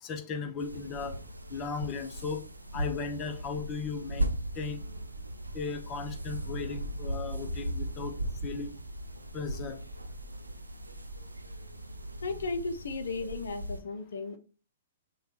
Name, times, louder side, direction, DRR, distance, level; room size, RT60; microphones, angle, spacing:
voice 1, 0.0-1.2 1.5-2.4 2.7-4.3 4.6-4.8 5.5-8.1 8.4-8.7 9.3-9.8, left 5 dB, 30° left, 6 dB, 0.7 m, -36 dB
sound 1, 0.6-13.8, right 1 dB, 90° right, 0.5 m, -38 dB
voice 2, 12.2-14.4, left 3 dB, 65° left, 9 dB, 0.6 m, -35 dB
6.5 x 2.4 x 2.8 m, 0.36 s
figure-of-eight pair, 115°, 0 cm